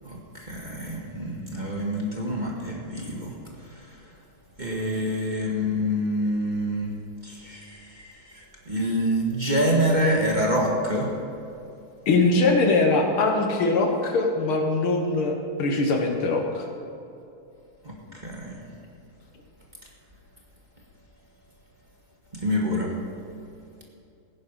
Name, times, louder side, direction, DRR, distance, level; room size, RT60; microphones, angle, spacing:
voice 1, 0.0-3.3 3.7-4.0 4.6-6.9 7.2-11.1 17.8-18.7 22.3-22.9, equal, 20° right, -2 dB, 1.7 m, -27 dB
voice 2, 12.1-16.7, left 3 dB, 75° left, 3 dB, 2.2 m, -22 dB
16.0 x 10.0 x 5.6 m, 2.7 s
omnidirectional pair, 2.4 m